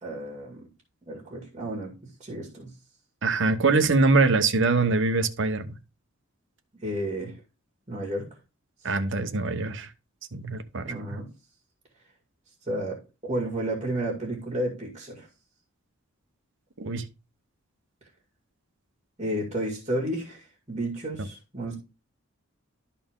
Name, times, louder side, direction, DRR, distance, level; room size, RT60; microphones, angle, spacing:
voice 1, 0.0-0.7 1.0-2.7 6.8-7.4 7.9-8.3 10.8-11.3 12.7-15.3 19.2-21.7, right 1 dB, 25° right, 2.2 m, -32 dB
voice 2, 3.2-5.7 8.8-9.9 10.3-10.9 16.8-17.1, right 3 dB, 55° right, 0.8 m, -23 dB
12.5 x 4.2 x 3.7 m
head